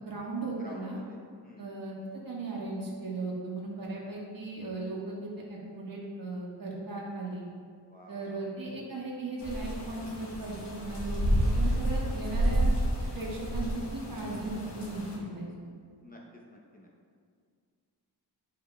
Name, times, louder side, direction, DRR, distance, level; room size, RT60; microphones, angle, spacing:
voice 1, 0.0-1.0 1.6-7.5 8.1-12.7 13.1-15.5, right 2 dB, 55° right, -4 dB, 1.5 m, -37 dB
voice 2, 0.6-1.7 7.9-8.4 16.0-16.2 16.5-16.9, left 1 dB, 20° left, -2 dB, 0.7 m, -51 dB
sound 1, 9.4-15.2, right 1 dB, 80° left, 1.4 m, -30 dB
10.0 x 5.5 x 2.3 m, 2.1 s
wide cardioid pair, 135°, 41 cm